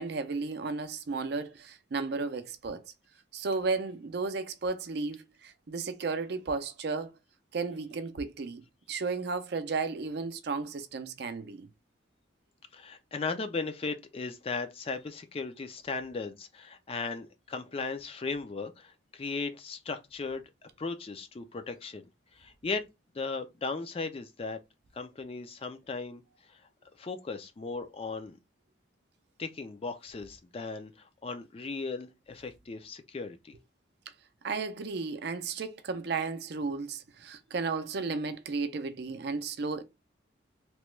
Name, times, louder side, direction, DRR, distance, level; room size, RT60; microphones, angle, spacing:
voice 1, 0.0-2.8 3.3-7.1 7.5-8.6 8.9-11.7 34.4-39.8, right 4 dB, 55° right, 0.4 m, -34 dB
voice 2, 12.7-20.4 20.8-22.0 22.3-22.8 23.1-24.6 24.9-26.2 26.5-26.6 27.0-28.4 29.4-33.5, left 4 dB, 30° left, 0.3 m, -37 dB
2.9 x 2.2 x 3.1 m
head